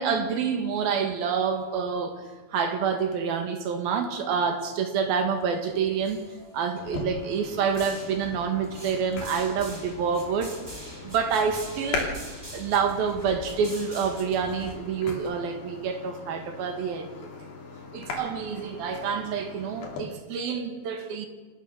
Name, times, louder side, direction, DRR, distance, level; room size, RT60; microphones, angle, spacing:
voice 1, 0.0-6.2 6.5-10.6 11.0-12.1 12.5-17.1 17.9-21.3, right 6 dB, 60° right, 6 dB, 3.2 m, -27 dB
sound 1, 5.2-5.6 5.8-6.8 7.5-14.8, right 1 dB, 10° right, 1.4 m, -44 dB
sound 2, 6.8-20.0, left 3 dB, 65° left, 4.9 m, -39 dB
29.0 x 14.5 x 6.5 m, 1.4 s
omnidirectional pair, 5.3 m